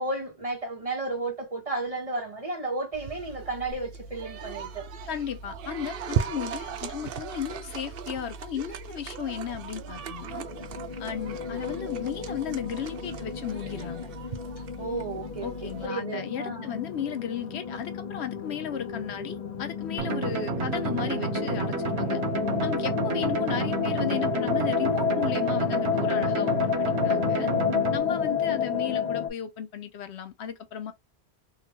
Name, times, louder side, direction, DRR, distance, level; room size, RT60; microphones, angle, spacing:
voice 1, 0.0-4.9 14.8-16.8, right 2 dB, 35° right, 1.3 m, -33 dB
sound 1, 2.9-15.9, right 7 dB, 65° right, 0.7 m, -37 dB
voice 2, 5.1-10.4 11.0-14.1 15.4-22.2 22.6-27.5 27.9-30.9, left 8 dB, 85° left, 1.0 m, -35 dB
sound 2, 9.9-29.3, left 7 dB, 45° left, 0.7 m, -31 dB
sound 3, 20.0-28.0, right 4 dB, 85° right, 1.1 m, -30 dB
3.8 x 2.3 x 2.9 m
omnidirectional pair, 1.1 m